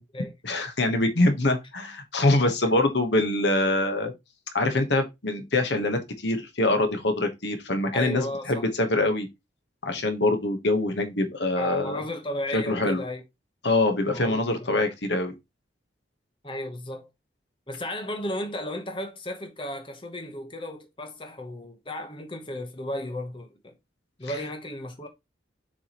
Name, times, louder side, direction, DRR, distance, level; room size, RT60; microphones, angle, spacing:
voice 1, 0.4-4.1 4.5-9.3 9.8-12.0 12.5-13.0 13.6-15.3, left 2 dB, 65° left, 1.2 m, -24 dB
voice 2, 7.9-8.6 11.6-13.2 14.1-14.7 16.4-17.1 17.7-23.7 24.2-25.1, left 1 dB, 25° left, 1.0 m, -34 dB
7.2 x 4.7 x 3.0 m
head